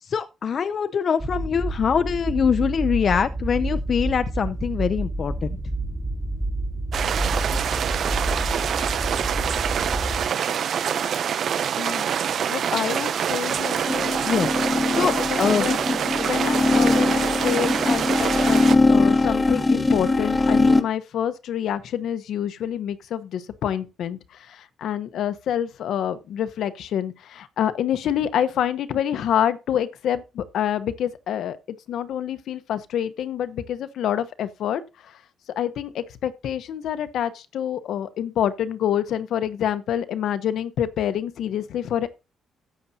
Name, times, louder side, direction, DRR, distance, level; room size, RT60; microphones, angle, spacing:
voice 1, 0.0-5.6 14.3-14.5 14.9-15.7, left 7 dB, 50° left, 0.5 m, -23 dB
sound 1, 1.2-10.3, right 2 dB, 15° right, 2.6 m, -29 dB
sound 2, 6.9-18.8, right 8 dB, 60° right, 0.6 m, -25 dB
voice 2, 12.5-14.2 14.6-15.8 16.2-24.2 24.5-31.6 31.9-34.8 35.6-42.1, left 10 dB, 75° left, 1.0 m, -27 dB
sound 3, 13.8-20.8, left 2 dB, 20° left, 1.1 m, -21 dB
13.5 x 8.5 x 2.8 m
cardioid pair, 105°, 0 cm